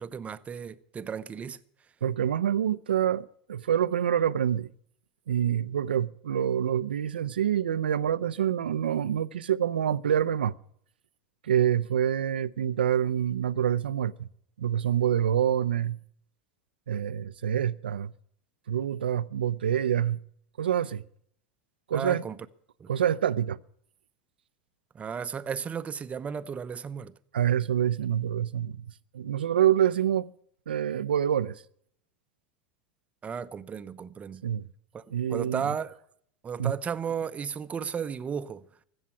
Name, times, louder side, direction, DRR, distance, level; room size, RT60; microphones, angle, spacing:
voice 1, 0.0-1.6 21.9-22.4 22.8-22.9 24.9-27.1 33.2-34.4 34.9-35.0 35.3-36.0 36.4-38.7, right 7 dB, 25° right, 0.8 m, -34 dB
voice 2, 2.0-4.7 5.3-10.6 11.4-14.3 14.6-16.0 16.9-18.1 18.7-20.2 20.6-21.0 21.9-22.2 22.9-23.6 27.3-30.3 30.7-31.6 34.4-34.7 35.1-35.7 36.6-36.7, right 9 dB, 90° right, 0.5 m, -26 dB
15.5 x 7.3 x 9.8 m
hypercardioid pair, 95°, 5 cm